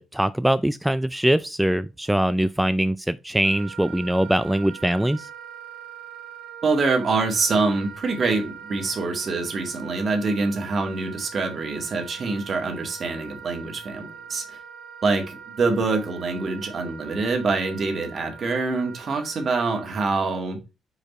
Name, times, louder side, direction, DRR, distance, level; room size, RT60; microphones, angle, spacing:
voice 1, 0.0-5.3, right 1 dB, 5° right, 0.3 m, -22 dB
Wind instrument woodwind instrument, 3.4-20.0, right 8 dB, 70° right, 1.4 m, -42 dB
voice 2, 6.6-14.6 15.0-20.6, right 3 dB, 45° right, 1.9 m, -25 dB
5.0 x 4.7 x 4.1 m
cardioid pair, 80°, 0 cm